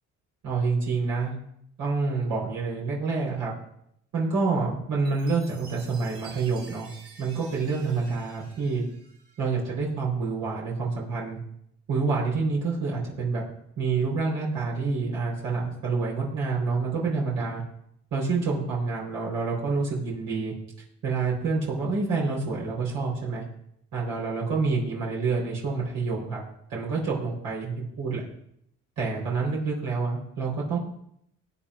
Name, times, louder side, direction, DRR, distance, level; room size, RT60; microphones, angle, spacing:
voice 1, 0.4-1.4 1.8-3.5 4.1-6.9 7.2-8.8 9.4-11.4 11.9-13.5 13.8-17.6 18.1-20.5 21.0-23.4 23.9-26.4 26.7-28.2 29.0-30.8, right 4 dB, 90° right, -4 dB, 4.1 m, -27 dB
Chime, 5.0-9.7, right 4 dB, 50° right, 4.4 m, -50 dB
20.5 x 9.1 x 2.5 m, 0.73 s
cardioid pair, 90°, 30 cm